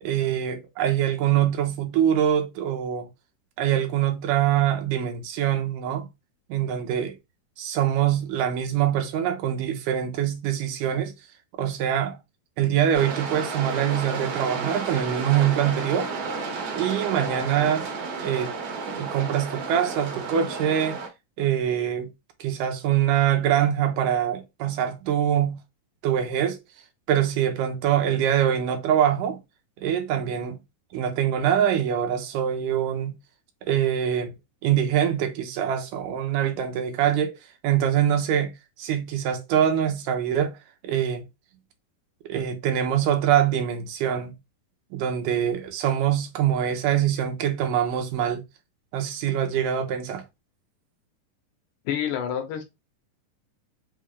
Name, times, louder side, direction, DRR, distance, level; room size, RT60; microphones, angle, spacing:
voice 1, 0.0-3.1 3.6-6.1 6.5-7.1 7.6-11.1 11.6-12.2 12.6-16.1 16.8-17.9 18.2-18.5 18.9-21.0 21.4-22.1 22.4-25.6 26.0-26.6 27.1-29.4 29.8-30.6 30.9-33.2 33.6-34.3 34.6-37.3 37.6-40.5 40.8-41.2 42.3-44.3 44.9-48.4 48.9-50.2, right 10 dB, 85° right, 2.4 m, -24 dB
sound 1, 12.9-21.1, right 4 dB, 65° right, 2.2 m, -32 dB
voice 2, 51.9-52.6, left 9 dB, 75° left, 2.3 m, -28 dB
5.6 x 2.4 x 3.3 m
omnidirectional pair, 3.8 m